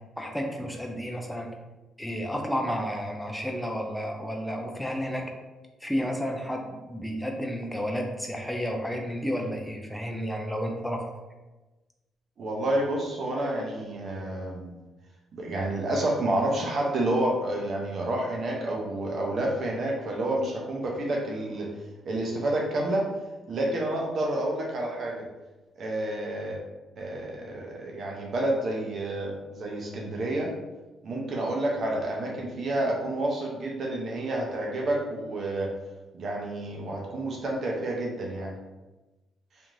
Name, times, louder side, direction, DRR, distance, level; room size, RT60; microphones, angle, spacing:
voice 1, 0.2-1.5 2.0-5.3 5.8-11.1, equal, 5° left, 2 dB, 0.5 m, -31 dB
voice 2, 12.4-14.7 15.3-21.7 22.1-23.0 23.5-25.2 25.8-26.6 27.0-30.5 31.0-35.7 36.1-38.5, right 1 dB, 55° right, -1 dB, 0.6 m, -29 dB
2.9 x 2.6 x 2.4 m, 1.1 s
cardioid pair, 90°, 0 cm